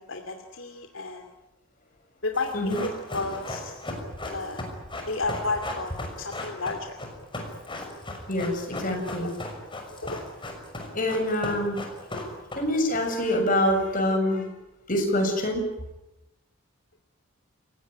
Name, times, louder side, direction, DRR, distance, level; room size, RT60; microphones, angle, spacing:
voice 1, 0.1-1.3 2.2-3.8 4.3-4.6 5.1-5.9 6.2-6.9 9.2-9.3 10.0-10.2, left 3 dB, 70° left, 4 dB, 2.7 m, -32 dB
Run, 2.3-13.0 13.2-13.3, left 1 dB, 25° left, 6.1 m, -36 dB
voice 2, 8.3-9.3 10.9-11.8 12.5-14.5 14.9-15.6, left 1 dB, 40° left, 4 dB, 6.8 m, -25 dB
29.0 x 17.5 x 9.9 m, 0.93 s
head